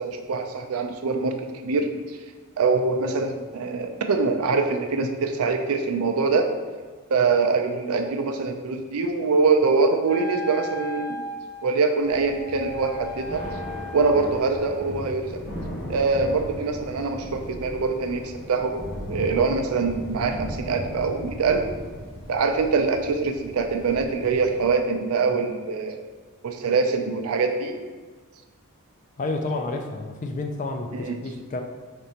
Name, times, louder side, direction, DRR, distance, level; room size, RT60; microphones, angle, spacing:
voice 1, 0.0-1.4 1.6-2.2 2.6-6.5 7.1-11.2 11.6-13.4 13.9-15.4 15.9-21.6 22.3-26.0 26.4-27.8 30.9-31.2, right 4 dB, 80° right, 5 dB, 0.4 m, -24 dB
Wind instrument woodwind instrument, 10.0-14.6, left 1 dB, 85° left, 0.8 m, -36 dB
Thunder / Rain, 12.0-24.9, equal, 65° left, 1.2 m, -37 dB
voice 2, 29.2-31.6, left 2 dB, 35° left, 5 dB, 0.4 m, -30 dB
5.1 x 3.3 x 2.8 m, 1.4 s
head